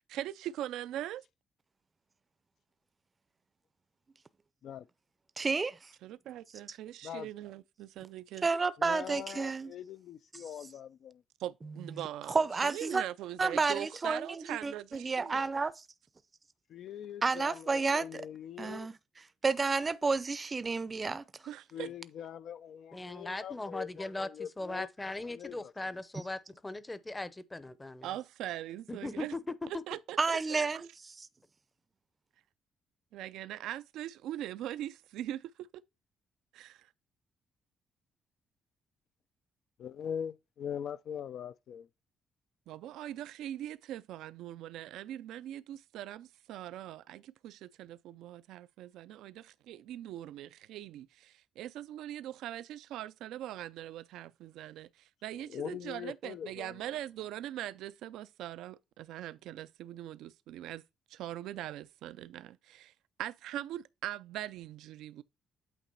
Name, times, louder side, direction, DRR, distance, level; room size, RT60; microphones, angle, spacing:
voice 1, 0.1-1.2 6.0-8.5 11.4-12.4 12.6-15.5 21.5-21.9 28.0-29.4 29.9-30.8 33.1-35.8 36.5-36.9 42.7-60.8 61.1-62.9 63.2-65.2, right 12 dB, 90° right, 0.3 m, -41 dB
voice 2, 5.4-5.9 8.4-9.7 12.0-13.0 13.4-15.8 17.2-18.2 18.6-18.9 19.4-21.2 30.2-31.3, right 4 dB, 30° right, 0.5 m, -31 dB
voice 3, 8.8-11.2 16.7-18.9 21.7-24.9 25.2-25.7 39.8-41.9 55.5-56.9, left 8 dB, 70° left, 0.4 m, -42 dB
voice 4, 22.9-28.1 28.9-29.4, left 2 dB, 15° left, 0.7 m, -39 dB
8.5 x 3.0 x 5.3 m
cardioid pair, 90°, 0 cm